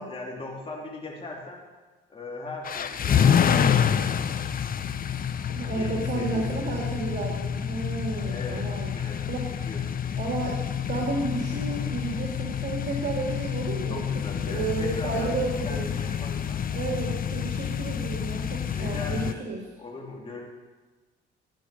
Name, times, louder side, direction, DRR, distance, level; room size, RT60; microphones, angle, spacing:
voice 1, 0.0-1.6 2.1-3.8 5.6-6.6 8.2-9.3 9.5-10.0 11.5-11.9 13.9-16.6 18.7-19.5 19.8-20.4, left 3 dB, 25° left, -2 dB, 2.5 m, -39 dB
sound 1, 2.6-19.3, left 8 dB, 45° left, 0.7 m, -28 dB
voice 2, 5.5-8.9 9.3-9.4 10.2-10.6 10.9-14.0 14.5-15.9 16.7-19.6, right 3 dB, 60° right, -2 dB, 2.4 m, -32 dB
11.5 x 9.1 x 6.5 m, 1.3 s
cardioid pair, 90°, 20 cm